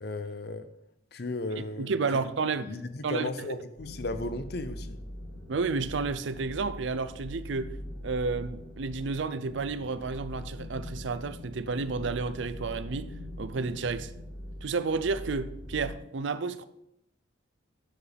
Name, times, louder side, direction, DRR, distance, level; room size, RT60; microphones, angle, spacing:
voice 1, 0.0-0.7 1.1-1.9 2.6-5.0, left 2 dB, 55° left, 0.6 m, -35 dB
voice 2, 1.6-2.7 3.0-3.6 5.5-7.7 8.0-13.1 13.4-14.1 14.6-16.6, right 4 dB, 70° right, 0.5 m, -31 dB
sound 1, 3.8-15.9, left 1 dB, 70° left, 2.7 m, -42 dB
10.5 x 7.2 x 3.4 m
head